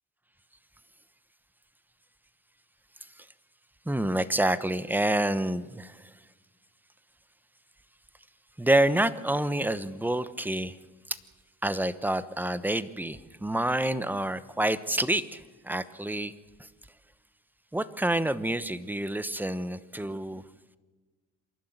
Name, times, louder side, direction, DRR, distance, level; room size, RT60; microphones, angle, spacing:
voice 1, 3.9-6.0 8.6-10.8 11.1-11.2 11.6-16.3 17.7-20.4, right 1 dB, 5° right, 14 dB, 1.0 m, -28 dB
27.0 x 12.0 x 8.1 m, 1.3 s
cardioid pair, 90°, 30 cm